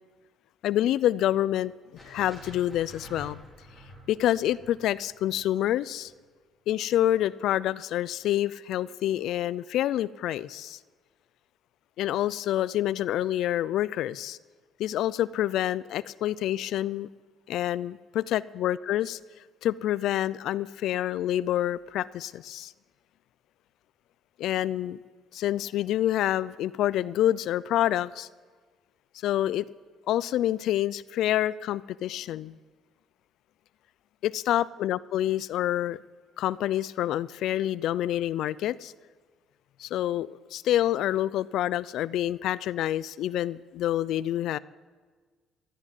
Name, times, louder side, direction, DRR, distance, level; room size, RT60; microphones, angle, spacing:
voice 1, 0.6-3.4 4.1-6.1 6.7-10.8 12.0-14.4 14.8-17.1 17.5-19.2 19.6-22.7 24.4-25.0 25.3-28.3 29.2-29.7 30.1-32.6 34.2-36.0 36.4-38.9 39.8-44.6, left 12 dB, 70° left, 19 dB, 0.4 m, -27 dB
sound 1, 2.0-6.1, equal, 10° right, 5.7 m, -49 dB
13.0 x 11.0 x 9.9 m, 1.5 s
cardioid pair, 135°, 0 cm